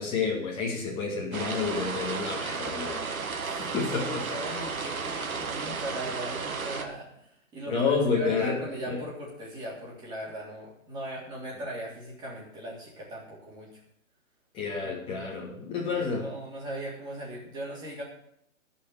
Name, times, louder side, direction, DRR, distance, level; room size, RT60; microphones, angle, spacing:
voice 1, 0.0-3.0 3.6-4.2 7.7-8.6 8.9-9.0 14.5-16.2, left 5 dB, 15° left, -4 dB, 2.8 m, -29 dB
sound 1, 1.3-6.8, right 5 dB, 90° right, 1.9 m, -33 dB
voice 2, 3.4-13.8 14.8-14.9 15.2-15.3 15.8-18.0, right 1 dB, 10° right, -5 dB, 3.4 m, -39 dB
13.0 x 5.6 x 9.2 m, 0.73 s
hypercardioid pair, 160°, 41 cm